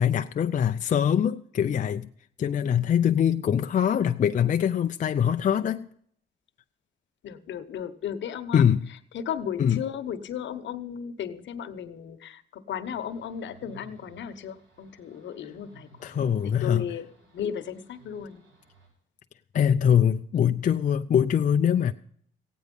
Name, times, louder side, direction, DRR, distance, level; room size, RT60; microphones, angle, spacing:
voice 1, 0.0-2.1 2.4-5.8 8.5-8.8 9.6-9.8 16.0-16.9 19.5-21.9, left 8 dB, 40° left, 0.5 m, -23 dB
voice 2, 7.2-8.6 8.9-17.1 17.3-18.4, left 8 dB, 65° left, 1.0 m, -35 dB
sound 1, 12.8-18.9, right 4 dB, 65° right, 7.6 m, -56 dB
15.5 x 9.3 x 5.3 m
cardioid pair, 90°, 20 cm